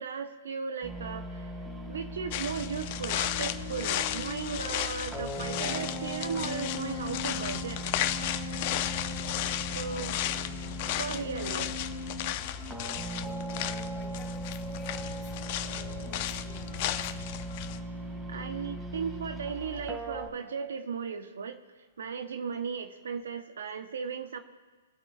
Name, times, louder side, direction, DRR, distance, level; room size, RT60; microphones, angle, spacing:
voice 1, 0.0-1.5 1.9-7.8 9.7-10.2 11.0-11.8 18.3-21.6 22.0-24.4, right 6 dB, 70° right, 7 dB, 1.2 m, -36 dB
sound 1, 0.8-20.3, equal, 10° right, 2.3 m, -38 dB
sound 2, 2.3-17.8, left 13 dB, 45° left, 0.7 m, -35 dB
voice 2, 9.7-10.1 10.8-11.5 13.2-15.3 15.6-17.3, left 3 dB, 15° left, -2 dB, 3.5 m, -53 dB
22.0 x 8.7 x 2.6 m, 1.3 s
hypercardioid pair, 130°, 0 cm